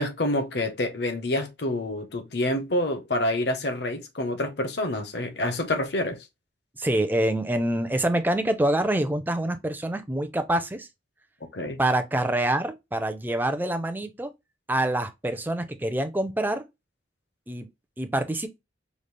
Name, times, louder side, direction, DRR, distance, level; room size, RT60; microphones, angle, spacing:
voice 1, 0.0-6.2 11.5-11.8, left 1 dB, 60° left, 0.9 m, -27 dB
voice 2, 6.8-10.9 11.8-14.3 14.7-16.6 17.5-17.7 18.0-18.5, right 1 dB, 10° right, 0.5 m, -26 dB
5.2 x 2.4 x 3.2 m
head